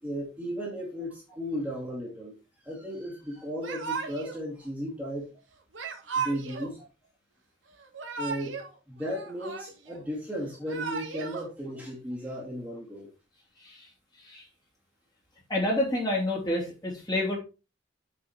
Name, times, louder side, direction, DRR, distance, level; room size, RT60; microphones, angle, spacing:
voice 1, 0.0-2.3 2.6-5.3 6.2-6.8 8.2-13.1, equal, 5° right, -4 dB, 2.4 m, -35 dB
Yell / Crying sobbing, 3.6-4.4 5.7-6.7 7.8-8.7 9.0-10.0 10.5-11.4, right 5 dB, 75° right, 1.7 m, -35 dB
voice 2, 15.5-17.4, left 1 dB, 20° left, -2 dB, 3.2 m, -28 dB
8.5 x 4.9 x 4.5 m, 0.30 s
head